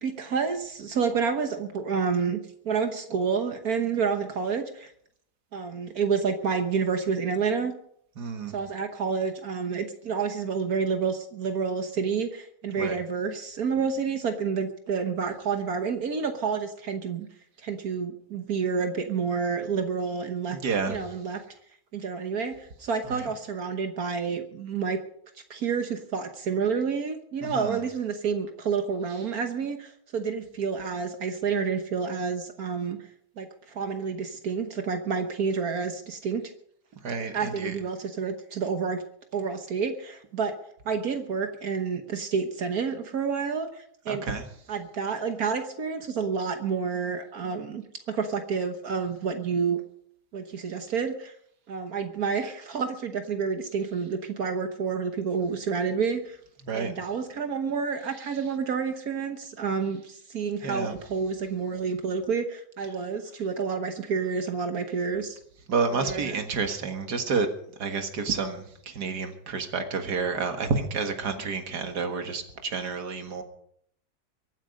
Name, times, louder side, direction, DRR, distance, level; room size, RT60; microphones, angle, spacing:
voice 1, 0.0-2.4 2.6-4.9 5.5-7.7 8.5-17.3 17.6-20.6 20.9-21.4 21.9-25.0 25.5-33.0 33.4-36.4 37.3-39.0 39.3-40.5 40.8-44.3 44.7-47.8 48.1-49.8 50.3-51.3 51.7-56.4 56.7-65.4 65.9-66.4, right 5 dB, 65° right, 7 dB, 1.6 m, -29 dB
voice 2, 8.2-8.5 12.8-13.0 20.6-21.0 23.1-23.3 27.4-27.8 37.0-37.7 44.1-44.5 56.6-56.9 60.6-60.9 65.7-67.5 67.8-73.4, right 4 dB, 85° right, 6 dB, 2.2 m, -29 dB
24.0 x 9.0 x 5.3 m, 0.68 s
omnidirectional pair, 1.7 m